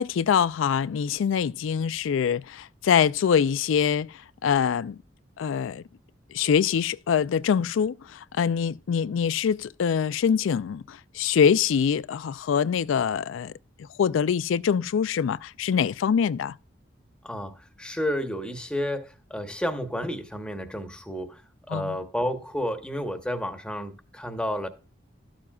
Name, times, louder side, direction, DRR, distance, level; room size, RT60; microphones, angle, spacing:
voice 1, 0.0-5.0 5.4-5.8 6.3-13.5 13.8-16.5 21.7-22.0, left 7 dB, 80° left, 0.3 m, -24 dB
voice 2, 17.2-24.7, equal, 5° left, 0.9 m, -31 dB
13.0 x 7.2 x 2.3 m
head